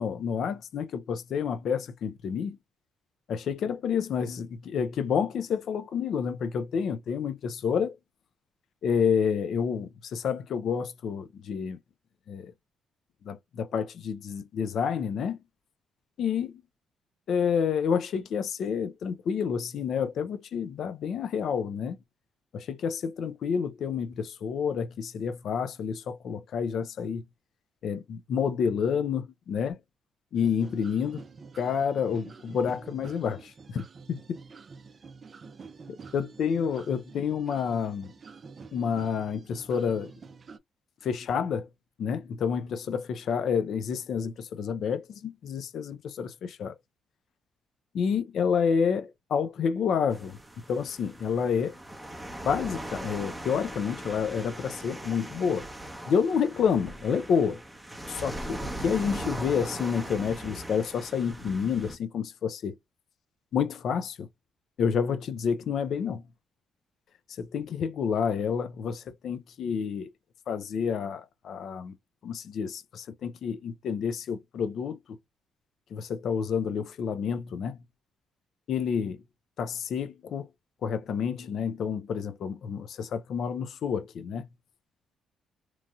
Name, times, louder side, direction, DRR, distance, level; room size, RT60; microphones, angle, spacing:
voice 1, 0.0-2.6 3.3-8.0 8.8-11.8 12.3-12.5 13.2-15.4 16.2-16.6 17.3-22.0 22.5-27.2 27.8-29.8 30.3-31.2 31.6-34.2 36.1-38.1 38.7-40.1 41.0-41.7 42.0-46.7 47.9-50.4 50.7-51.8 52.4-55.7 56.1-57.6 58.1-62.8 63.5-64.3 64.8-66.2 67.4-70.1 70.5-72.0 72.2-75.2 75.9-77.8 78.7-79.2 79.6-80.5 80.8-84.5, left 7 dB, 65° left, 0.5 m, -29 dB
sound 1, 30.3-40.6, right 5 dB, 40° right, 0.4 m, -48 dB
sound 2, 50.1-62.0, right 1 dB, 5° right, 0.7 m, -39 dB
3.0 x 2.6 x 2.3 m
cardioid pair, 90°, 0 cm